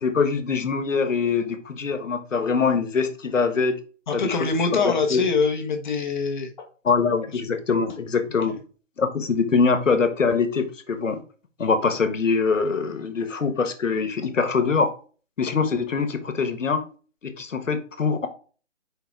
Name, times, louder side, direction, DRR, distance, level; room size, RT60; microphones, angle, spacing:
voice 1, 0.0-3.8 4.1-5.2 6.8-8.6 9.0-11.2 11.6-14.9 15.4-16.8 17.2-18.3, left 5 dB, 80° left, 9 dB, 1.4 m, -23 dB
voice 2, 4.1-6.7 7.3-7.4, left 4 dB, 40° left, 4 dB, 1.3 m, -24 dB
5.1 x 4.7 x 4.6 m, 0.38 s
hypercardioid pair, 160°, 38 cm